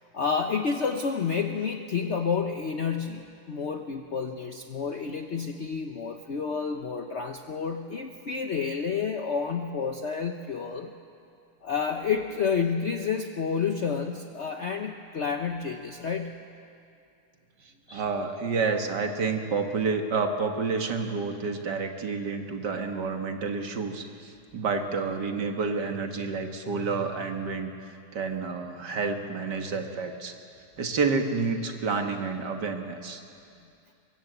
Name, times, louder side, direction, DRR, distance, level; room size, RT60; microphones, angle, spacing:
voice 1, 0.1-10.9 11.6-16.4 17.9-18.0, left 6 dB, 50° left, 5 dB, 1.1 m, -30 dB
voice 2, 17.9-30.3 30.8-33.2, right 4 dB, 85° right, 4 dB, 2.3 m, -29 dB
23.5 x 22.0 x 8.1 m, 2.5 s
omnidirectional pair, 1.8 m